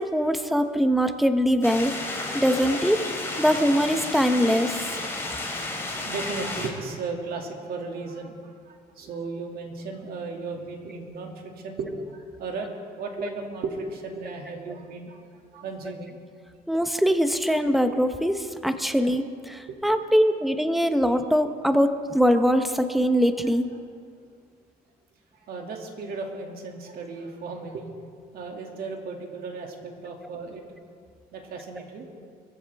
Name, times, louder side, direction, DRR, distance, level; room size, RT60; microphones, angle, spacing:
voice 1, 0.0-1.9 2.3-3.0 3.4-4.9 16.7-23.7, equal, ahead, 8 dB, 0.9 m, -22 dB
sound 1, 1.6-6.7, left 2 dB, 15° left, 3.1 m, -32 dB
voice 2, 5.0-15.2 15.5-16.2 18.9-19.0 19.7-20.1 25.3-27.9 28.3-30.6 31.3-32.1, right 4 dB, 65° right, 1 dB, 2.5 m, -36 dB
22.5 x 14.5 x 3.6 m, 2.2 s
cardioid pair, 110°, 17 cm